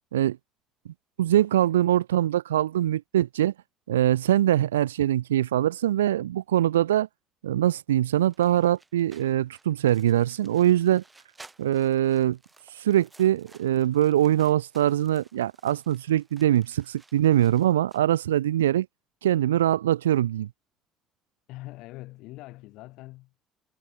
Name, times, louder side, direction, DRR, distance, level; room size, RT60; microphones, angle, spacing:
voice 1, 1.2-3.5 3.9-7.1 7.4-11.0 11.6-12.4 12.7-18.9 19.2-20.5, right 12 dB, 85° right, 0.3 m, -23 dB
sound 1, 8.2-18.0, right 3 dB, 20° right, 3.6 m, -56 dB
voice 2, 21.5-23.5, left 19 dB, 65° left, 1.5 m, -43 dB
hypercardioid pair, 60°, 0 cm